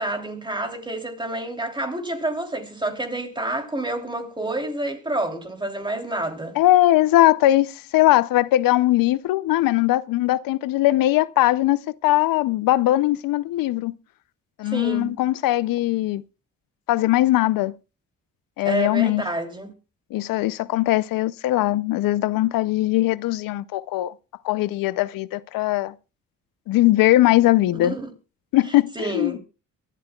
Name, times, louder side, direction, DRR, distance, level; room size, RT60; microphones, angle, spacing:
voice 1, 0.0-6.6 14.6-15.1 18.6-19.7 27.7-28.1 28.9-29.4, right 2 dB, 15° right, 3.0 m, -28 dB
voice 2, 6.6-13.9 14.6-16.2 16.9-17.7 18.6-19.2 20.1-24.1 24.4-25.9 26.7-28.0 28.5-29.4, left 16 dB, 85° left, 0.6 m, -20 dB
23.0 x 12.5 x 2.3 m
cardioid pair, 95°, 33 cm